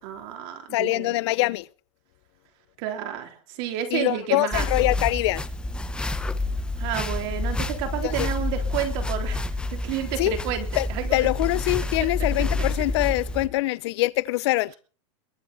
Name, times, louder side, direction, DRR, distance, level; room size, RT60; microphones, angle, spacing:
voice 1, 0.0-1.1 2.8-4.7 6.8-9.4 9.7-11.2, right 10 dB, 50° right, 3.5 m, -30 dB
voice 2, 0.7-1.7 3.9-5.4 8.0-8.3 10.2-10.4 10.8-14.7, left 19 dB, 60° left, 0.8 m, -24 dB
sound 1, 4.5-13.5, left 2 dB, 5° left, 1.0 m, -28 dB
22.0 x 10.0 x 4.1 m
supercardioid pair, 150°, 16 cm